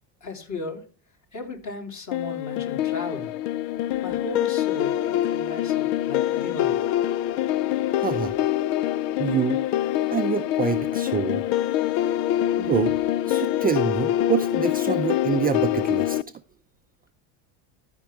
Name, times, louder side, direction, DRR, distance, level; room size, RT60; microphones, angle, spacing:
voice 1, 0.2-0.9 1.3-3.3 4.0-5.0 5.3-6.8, left 2 dB, 35° left, 3.4 m, -35 dB
sound 1, 2.1-16.2, left 13 dB, 70° left, 0.7 m, -25 dB
voice 2, 8.0-8.3 9.2-9.6 10.1-11.4 12.6-12.9 13.3-16.2, right 7 dB, 20° right, 0.5 m, -26 dB
14.0 x 5.9 x 3.4 m
hypercardioid pair, 90°, 50 cm